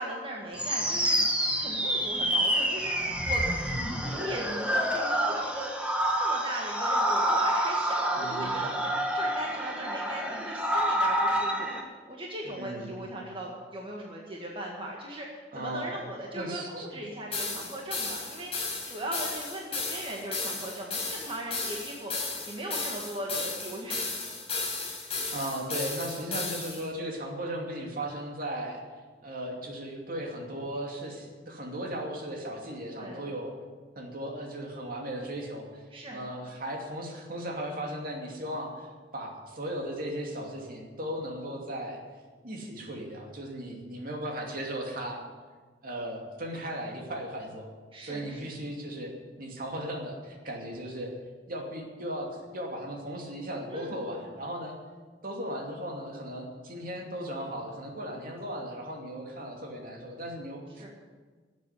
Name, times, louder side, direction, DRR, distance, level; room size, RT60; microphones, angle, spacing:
voice 1, 0.0-3.4 4.1-5.7 6.2-11.7 12.1-22.1 22.5-24.1 32.9-33.2 35.9-36.2 47.9-48.5 53.7-54.0 60.8-60.9, right 1 dB, 30° right, -2 dB, 1.9 m, -38 dB
sound 1, 0.6-11.8, equal, 5° right, 1.6 m, -28 dB
voice 2, 8.2-8.7 12.6-13.0 15.5-16.0 16.3-17.0 25.1-28.8 29.2-33.5 34.0-42.0 42.4-45.2 45.8-47.7 48.0-49.1 49.4-51.1 51.5-54.8 55.2-60.9, right 1 dB, 55° right, 1 dB, 2.7 m, -37 dB
sound 2, 17.3-26.8, left 3 dB, 35° left, 4.7 m, -34 dB
13.0 x 8.1 x 9.8 m, 1.4 s
head